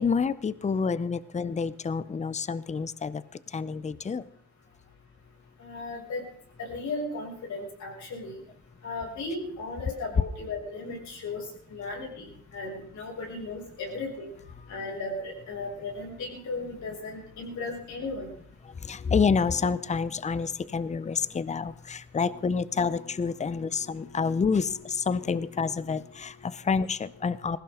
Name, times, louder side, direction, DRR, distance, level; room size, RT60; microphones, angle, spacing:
voice 1, 0.0-4.2 14.6-14.8 18.6-27.6, left 5 dB, 25° left, 17 dB, 0.7 m, -28 dB
voice 2, 5.6-6.2 6.6-8.4 8.8-11.4 11.7-14.3 14.7-18.3, left 3 dB, 70° left, -2 dB, 6.9 m, -36 dB
20.0 x 16.0 x 3.9 m, 0.63 s
cardioid pair, 90°, 30 cm